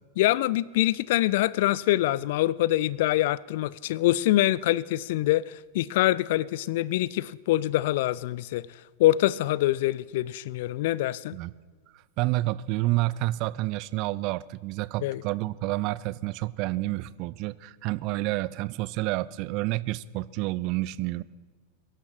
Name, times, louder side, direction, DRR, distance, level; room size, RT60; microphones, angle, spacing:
voice 1, 0.2-8.7 9.0-11.4 15.0-15.2, left 15 dB, 50° left, 0.4 m, -25 dB
voice 2, 12.2-21.2, right 18 dB, 40° right, 0.4 m, -29 dB
22.0 x 12.0 x 4.4 m
figure-of-eight pair, 90°, 0 cm